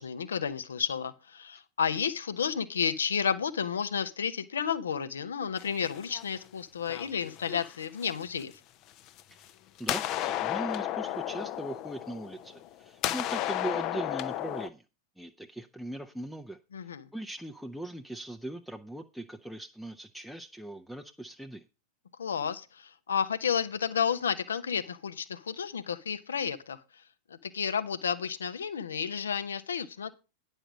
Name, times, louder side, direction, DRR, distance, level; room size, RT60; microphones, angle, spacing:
voice 1, 0.0-8.5 16.7-17.1 22.2-26.8 27.3-30.1, left 7 dB, 70° left, 1.0 m, -31 dB
sound 1, 5.6-6.4 6.9-8.4 9.1-9.5 9.8-12.7 13.0-14.7, left 13 dB, 40° left, 0.7 m, -33 dB
voice 2, 9.8-14.8 15.2-21.6, right 1 dB, ahead, 0.7 m, -40 dB
10.0 x 5.5 x 6.1 m
figure-of-eight pair, 90°, 0 cm